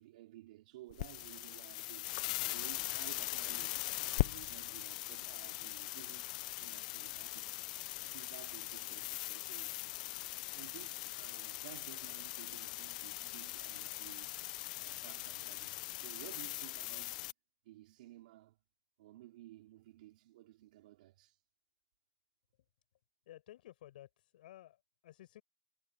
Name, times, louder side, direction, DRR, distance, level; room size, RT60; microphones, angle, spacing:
voice 1, 0.0-3.8 4.1-6.3 6.6-7.7 8.0-9.7 10.0-14.3 14.7-17.3 17.6-18.6 19.0-21.4, right 16 dB, 65° right, 4.7 m, -56 dB
sound 1, 0.9-17.3, left 18 dB, 50° left, 0.5 m, -40 dB
voice 2, 23.3-25.4, left 13 dB, 80° left, 7.9 m, -55 dB
supercardioid pair, 175°, 5 cm